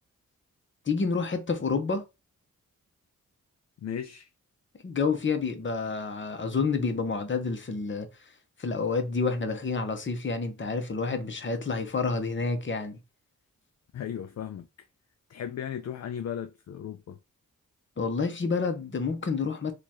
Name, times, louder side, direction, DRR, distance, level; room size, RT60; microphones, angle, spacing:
voice 1, 0.9-2.0 4.8-8.1 8.6-13.0 18.0-19.7, left 4 dB, 35° left, 0.9 m, -29 dB
voice 2, 3.8-4.3 13.9-14.7 15.3-17.2, left 9 dB, 50° left, 0.4 m, -36 dB
3.0 x 2.4 x 4.1 m
cardioid pair, 70°, 33 cm